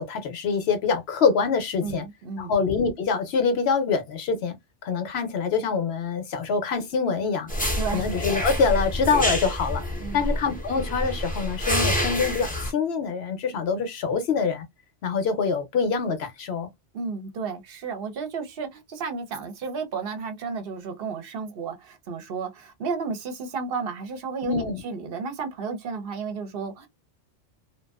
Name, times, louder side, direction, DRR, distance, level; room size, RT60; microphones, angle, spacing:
voice 1, 0.0-2.0 2.4-4.6 4.8-7.5 7.9-9.8 10.1-14.7 15.0-16.7 24.4-24.8, left 5 dB, 65° left, 0.9 m, -25 dB
voice 2, 1.8-2.5 7.8-8.1 10.0-10.3 16.9-24.5 24.8-26.9, right 5 dB, 60° right, 0.8 m, -32 dB
sound 1, 7.5-12.7, equal, 10° left, 0.6 m, -27 dB
2.5 x 2.2 x 2.3 m
omnidirectional pair, 1.2 m